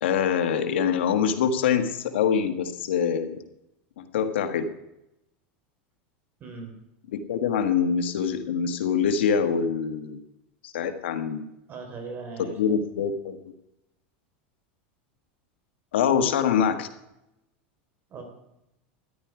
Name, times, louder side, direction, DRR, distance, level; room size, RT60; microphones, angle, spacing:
voice 1, 0.0-3.4 4.0-4.7 7.1-10.2 10.6-11.5 12.6-13.4 15.9-16.9, left 7 dB, 90° left, 9 dB, 1.4 m, -24 dB
voice 2, 6.4-6.7 11.7-12.6 16.2-16.3 18.1-18.2, right 4 dB, 30° right, 4 dB, 3.9 m, -39 dB
13.5 x 10.5 x 4.8 m, 0.87 s
supercardioid pair, 125°, 6 cm